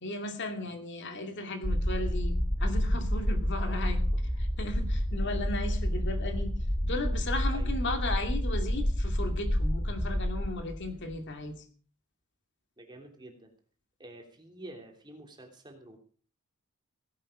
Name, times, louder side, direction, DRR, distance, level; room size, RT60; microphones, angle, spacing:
voice 1, 0.0-4.0 4.4-6.5 6.8-11.6, left 2 dB, 55° left, 6 dB, 2.5 m, -36 dB
sound 1, 1.6-11.2, equal, 10° left, 1.5 m, -29 dB
voice 2, 3.6-4.0 7.5-7.7 10.9-11.0 12.8-13.5 14.0-16.0, right 1 dB, 20° right, 2 dB, 3.1 m, -49 dB
17.0 x 11.0 x 5.0 m, 0.41 s
head